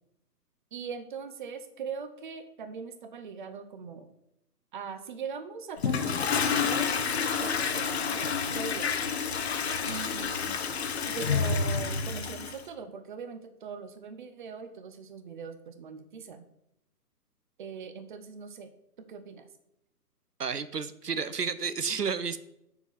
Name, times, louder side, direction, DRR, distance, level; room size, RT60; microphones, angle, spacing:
voice 1, 0.7-4.1 4.7-7.0 7.4-9.2 9.8-10.6 11.1-16.4 17.6-18.7 19.0-19.5, right 5 dB, 30° right, 10 dB, 0.9 m, -41 dB
Toilet flush, 5.8-12.6, left 6 dB, 40° left, 0.9 m, -29 dB
voice 2, 20.4-22.4, right 5 dB, 75° right, 14 dB, 0.8 m, -31 dB
7.0 x 6.1 x 7.1 m, 0.82 s
figure-of-eight pair, 130°, 47 cm